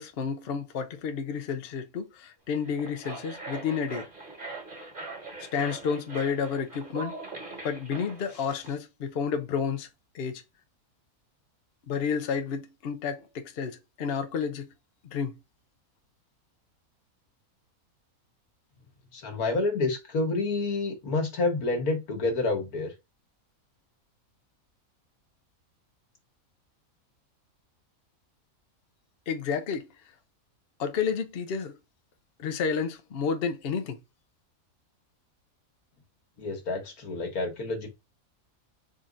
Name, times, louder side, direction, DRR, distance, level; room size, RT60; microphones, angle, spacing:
voice 1, 0.0-4.1 5.4-7.1 7.6-9.9 10.1-10.4 11.9-14.7 15.1-15.3 29.3-29.9 30.8-31.8 32.4-34.0, left 6 dB, 55° left, 0.7 m, -31 dB
sound 1, 2.5-8.7, right 3 dB, 35° right, 1.8 m, -41 dB
voice 2, 19.1-22.9 36.4-37.9, left 3 dB, 80° left, 1.8 m, -28 dB
4.2 x 3.8 x 2.5 m
omnidirectional pair, 1.5 m